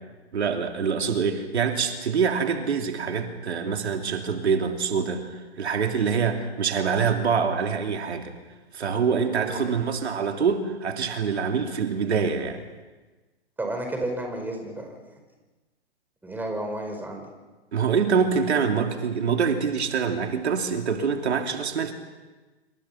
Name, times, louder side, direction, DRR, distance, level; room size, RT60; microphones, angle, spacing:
voice 1, 0.3-8.3 8.7-12.6 17.7-21.9, right 6 dB, 75° right, 4 dB, 3.2 m, -25 dB
voice 2, 13.6-14.9 16.2-17.3, right 1 dB, 5° right, 3 dB, 5.0 m, -32 dB
27.5 x 25.0 x 5.8 m, 1.2 s
hypercardioid pair, 130°, 33 cm